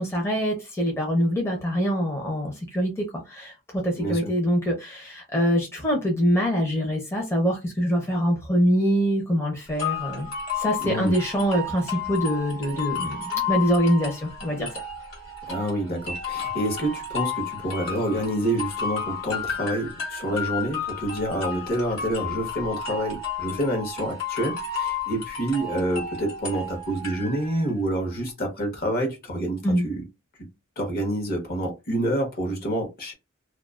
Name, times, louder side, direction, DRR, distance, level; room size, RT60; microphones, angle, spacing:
voice 1, 0.0-10.3 10.6-14.8 29.6-29.9, equal, 15° left, 0.6 m, -24 dB
voice 2, 4.0-4.3 10.8-11.1 15.5-30.0 30.8-33.1, right 1 dB, 45° left, 0.9 m, -28 dB
sound 1, 9.8-27.7, left 5 dB, 75° left, 1.1 m, -32 dB
2.3 x 2.3 x 2.3 m
head